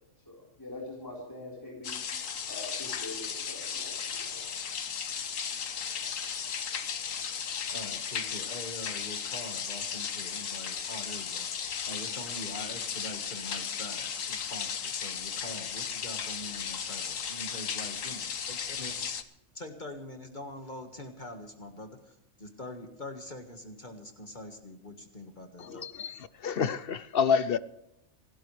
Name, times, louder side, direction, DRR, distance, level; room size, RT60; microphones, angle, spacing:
voice 1, 0.3-2.0 2.5-4.4, left 2 dB, 15° left, 4.3 m, -44 dB
sound 1, 1.8-19.2, left 7 dB, 90° left, 1.5 m, -35 dB
voice 2, 7.7-11.5 11.8-19.1 19.5-25.9, left 1 dB, 35° left, 1.8 m, -44 dB
voice 3, 25.6-27.6, left 6 dB, 55° left, 0.8 m, -28 dB
28.0 x 12.0 x 3.3 m
omnidirectional pair, 1.3 m